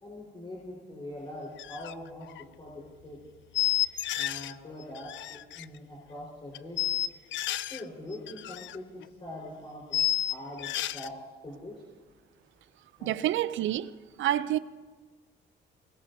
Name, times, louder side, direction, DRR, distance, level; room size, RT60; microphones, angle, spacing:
voice 1, 0.0-3.2 4.2-7.0 7.7-10.0 10.3-11.7 13.0-13.1, left 1 dB, 25° left, 4.3 m, -43 dB
sound 1, 1.6-1.9 2.2-2.4 3.5-4.5 4.8-5.6 6.5-7.8 8.1-8.8 9.0-9.1 9.9-11.1, left 13 dB, 70° left, 0.4 m, -30 dB
voice 2, 13.0-13.9 14.2-14.6, right 13 dB, 75° right, 0.5 m, -28 dB
20.0 x 19.5 x 2.7 m
cardioid pair, 90°, 20 cm